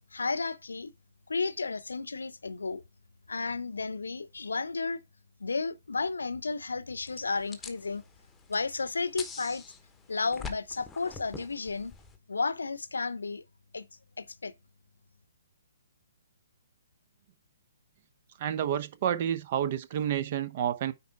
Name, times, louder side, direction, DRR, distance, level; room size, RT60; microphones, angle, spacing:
voice 1, 0.1-0.9 1.3-2.8 3.3-5.0 5.4-8.0 8.5-9.6 10.1-11.9 12.3-13.4 13.7-13.9 14.2-14.5, left 4 dB, 70° left, 0.7 m, -33 dB
sound 1, 7.1-12.2, left 5 dB, 10° left, 1.1 m, -45 dB
voice 2, 18.4-20.9, right 9 dB, 40° right, 0.8 m, -29 dB
9.4 x 4.2 x 4.7 m
figure-of-eight pair, 130°, 0 cm